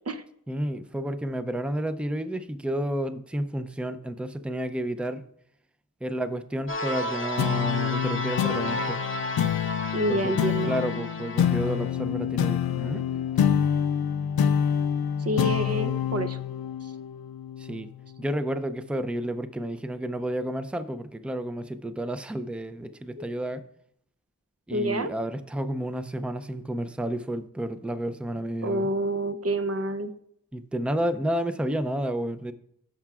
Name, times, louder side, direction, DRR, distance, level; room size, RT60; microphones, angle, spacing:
voice 1, 0.5-5.3 6.0-9.0 10.1-10.4 10.7-13.5 17.6-17.9 18.2-23.6 24.7-28.9 30.5-32.5, right 1 dB, 5° right, 0.5 m, -31 dB
sound 1, 6.7-11.9, left 1 dB, 35° left, 0.8 m, -33 dB
sound 2, 7.4-18.2, left 9 dB, 85° left, 0.5 m, -27 dB
voice 2, 9.9-10.7 15.2-16.4 16.8-16.9 23.2-23.3 24.7-25.1 28.6-30.1, right 1 dB, 45° right, 0.7 m, -28 dB
14.5 x 5.8 x 2.4 m
wide cardioid pair, 70°, 35 cm